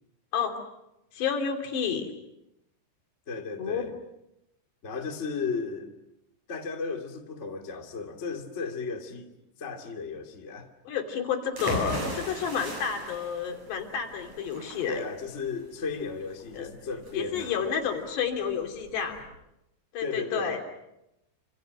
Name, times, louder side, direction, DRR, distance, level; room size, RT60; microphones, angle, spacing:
voice 1, 1.1-2.1 3.6-3.8 10.9-15.0 16.5-16.7 17.1-19.2 19.9-20.6, left 7 dB, 70° left, 5.0 m, -30 dB
voice 2, 3.3-3.9 4.8-5.9 6.5-9.3 9.6-10.7 14.9-17.6 20.0-20.6, left 4 dB, 20° left, 1.9 m, -34 dB
sound 1, 11.5-19.2, right 1 dB, 40° right, 8.7 m, -38 dB
28.5 x 27.5 x 6.6 m
omnidirectional pair, 5.2 m